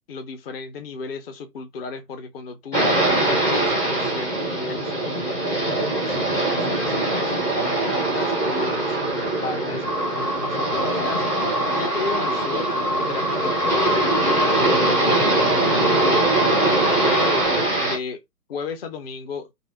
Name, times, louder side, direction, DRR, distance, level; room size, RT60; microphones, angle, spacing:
voice 1, 0.1-5.8 6.0-17.4 17.8-18.2 18.5-19.5, left 4 dB, 40° left, 1.0 m, -34 dB
sound 1, 2.7-18.0, right 2 dB, 5° left, 0.6 m, -22 dB
sound 2, 9.8-17.5, equal, 75° left, 3.0 m, -27 dB
5.3 x 2.0 x 4.3 m
figure-of-eight pair, 125°, 47 cm